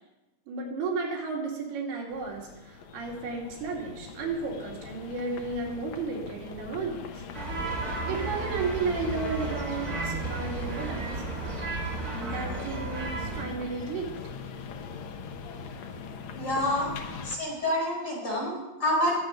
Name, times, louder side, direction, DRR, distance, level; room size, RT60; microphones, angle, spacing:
voice 1, 0.5-7.2 7.8-11.2 12.2-14.1, right 4 dB, 80° right, -1 dB, 4.5 m, -33 dB
sound 1, 2.1-17.4, left 5 dB, 65° left, 1.9 m, -41 dB
sound 2, 7.3-13.4, right 3 dB, 30° right, 2.0 m, -34 dB
voice 2, 16.4-16.9 17.2-19.2, left 1 dB, 25° left, -4 dB, 5.0 m, -28 dB
22.5 x 8.0 x 5.3 m, 1.0 s
omnidirectional pair, 4.5 m